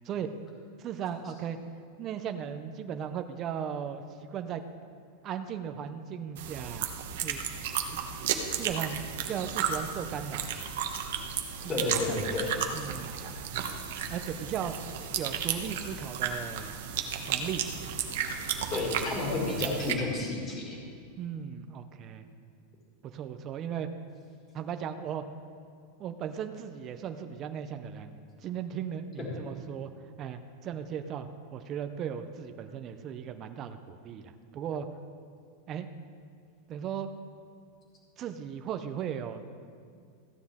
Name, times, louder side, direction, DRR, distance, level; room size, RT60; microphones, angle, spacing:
voice 1, 0.8-1.6 2.0-4.0 4.3-4.6 5.2-6.9 7.2-7.4 7.9-8.0 8.6-10.7 11.6-12.2 12.7-13.2 13.5-13.6 14.1-14.7 15.2-16.7 17.3-17.6 21.2-22.3 23.0-23.9 24.5-25.2 26.0-28.1 28.4-29.9 30.2-34.9 35.7-35.9 36.7-37.1 38.2-39.5, right 8 dB, 25° right, 8 dB, 0.5 m, -37 dB
sound 1, 6.4-19.9, right 8 dB, 60° right, 0.9 m, -34 dB
voice 2, 11.7-12.5 18.7-20.7 29.2-29.3, left 3 dB, 20° left, -2 dB, 2.0 m, -31 dB
15.0 x 9.3 x 3.6 m, 2.2 s
supercardioid pair, 175°, 0 cm